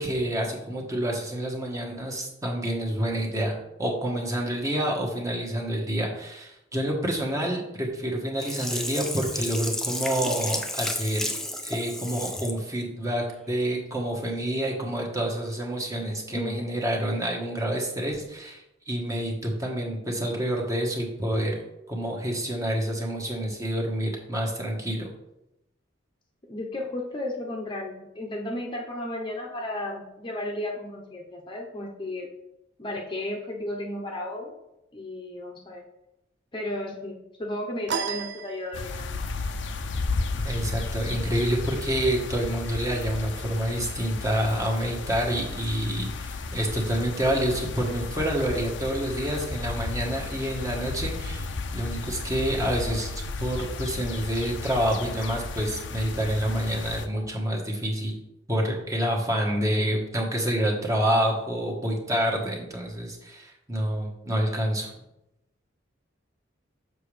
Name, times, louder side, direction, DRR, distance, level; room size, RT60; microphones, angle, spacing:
voice 1, 0.0-11.2 11.6-21.6 21.9-25.1 40.4-53.1 53.4-58.2 58.5-64.9, right 1 dB, 15° right, -1 dB, 1.2 m, -28 dB
Sink (filling or washing), 8.4-12.6 13.0-13.1, left 1 dB, 5° left, 0.5 m, -32 dB
voice 2, 16.3-16.6 26.5-32.3 32.8-34.5 34.9-35.8 36.5-39.1, left 1 dB, 25° left, 0 dB, 0.8 m, -34 dB
sound 1, 37.9-39.3, right 8 dB, 60° right, 0.5 m, -33 dB
sound 2, 38.7-57.1, left 3 dB, 70° left, 0.6 m, -33 dB
6.8 x 6.1 x 3.3 m, 0.88 s
head